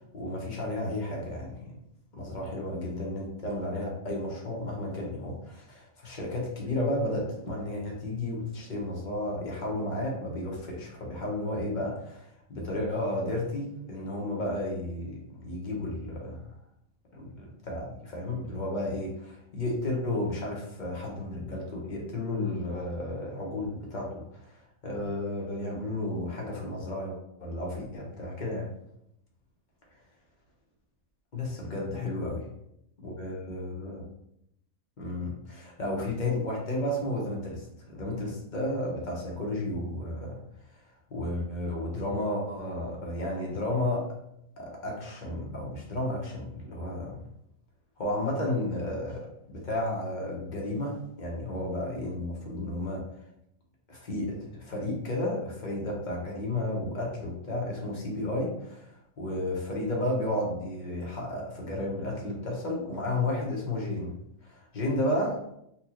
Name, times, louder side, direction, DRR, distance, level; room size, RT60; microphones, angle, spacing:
voice 1, 0.1-1.7 2.1-16.4 17.1-24.2 24.8-28.7 31.3-32.4 33.0-34.0 35.0-40.4 41.1-44.1 44.6-47.2 48.0-53.0 53.9-58.9 59.2-64.2 64.4-65.6, left 1 dB, 40° left, -2 dB, 0.8 m, -32 dB
4.1 x 2.3 x 2.9 m, 0.78 s
omnidirectional pair, 1.4 m